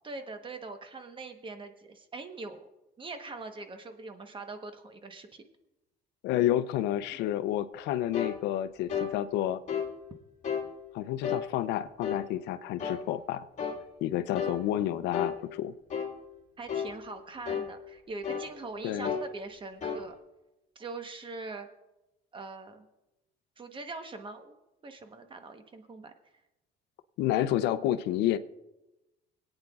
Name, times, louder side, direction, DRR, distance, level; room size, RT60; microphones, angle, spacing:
voice 1, 0.0-2.7 3.0-5.4 7.1-7.2 16.6-20.2 20.7-21.7 22.3-22.9 23.6-24.6 24.8-26.1, right 3 dB, 30° right, 7 dB, 1.1 m, -42 dB
voice 2, 6.2-9.6 10.9-13.5 14.0-15.7 18.8-19.1 27.2-28.4, left 12 dB, 85° left, 13 dB, 0.5 m, -29 dB
sound 1, 8.1-8.4 8.9-9.1 9.7-9.9 10.4-10.7 11.2-11.5 12.0-12.3 12.8-13.0 13.6-13.8 14.4-14.6 15.1-15.4 15.9-16.1 16.7-16.9 17.5-17.7 18.2-18.5 19.0-19.3 19.8-20.0, left 7 dB, 45° left, 1.7 m, -32 dB
24.0 x 8.8 x 2.4 m, 0.97 s
cardioid pair, 110°, 17 cm